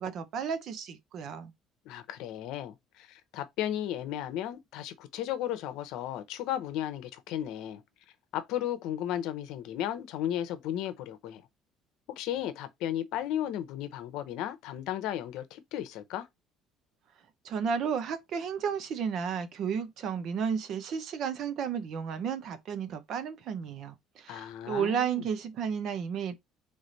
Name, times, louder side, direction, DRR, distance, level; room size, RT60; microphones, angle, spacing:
voice 1, 0.0-1.5 17.4-26.4, right 7 dB, 55° right, 0.8 m, -33 dB
voice 2, 1.8-7.8 8.3-11.4 12.1-16.3 24.3-25.2, left 11 dB, 75° left, 0.8 m, -35 dB
3.5 x 3.3 x 4.0 m
cardioid pair, 135°, 0 cm